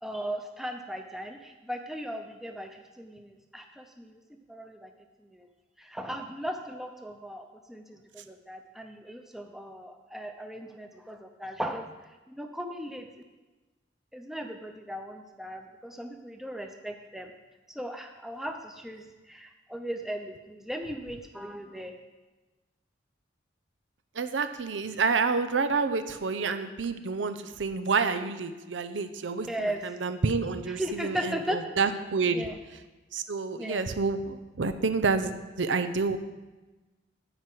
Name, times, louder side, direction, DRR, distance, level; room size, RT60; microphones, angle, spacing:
voice 1, 0.0-4.2 4.5-4.9 5.2-5.5 5.8-11.9 12.3-13.1 14.1-17.3 17.7-21.9 29.5-29.8 30.7-31.8 32.3-32.6 33.6-33.8, equal, ahead, 4 dB, 0.7 m, -37 dB
voice 2, 24.1-32.5 33.1-36.2, right 4 dB, 85° right, 10 dB, 0.7 m, -29 dB
10.0 x 4.8 x 7.8 m, 1.2 s
head